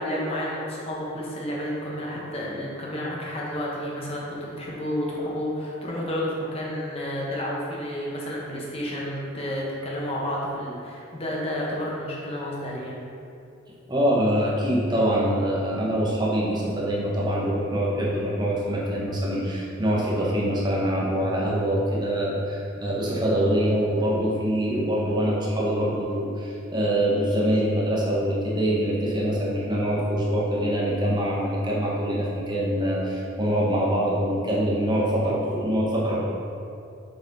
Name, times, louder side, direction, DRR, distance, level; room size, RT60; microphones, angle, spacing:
voice 1, 0.0-13.0, equal, 30° left, -4 dB, 1.2 m, -31 dB
voice 2, 13.9-36.3, equal, 20° right, -5 dB, 1.1 m, -24 dB
6.9 x 4.2 x 4.0 m, 2.6 s
head